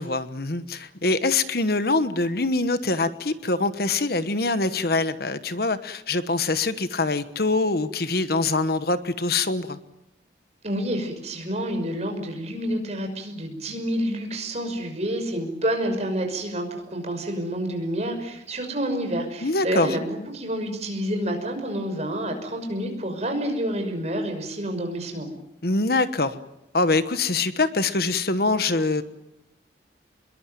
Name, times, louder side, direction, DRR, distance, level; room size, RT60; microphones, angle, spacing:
voice 1, 0.0-9.8 19.4-20.0 25.6-26.4 26.7-29.0, left 3 dB, 55° left, 12 dB, 1.2 m, -24 dB
voice 2, 10.6-25.3, right 1 dB, 35° right, 4 dB, 5.9 m, -28 dB
25.5 x 22.0 x 9.2 m, 0.85 s
head